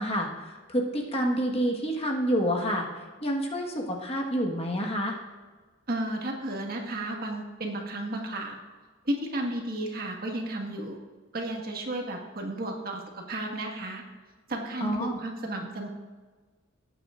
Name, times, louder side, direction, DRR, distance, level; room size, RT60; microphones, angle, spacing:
voice 1, 0.0-2.9 3.2-5.2 14.8-15.2, equal, 30° left, 0 dB, 1.5 m, -28 dB
voice 2, 5.9-8.6 9.1-11.0 11.3-14.0 14.5-15.9, right 1 dB, 50° right, 0 dB, 1.7 m, -33 dB
19.0 x 8.9 x 2.5 m, 1.3 s
head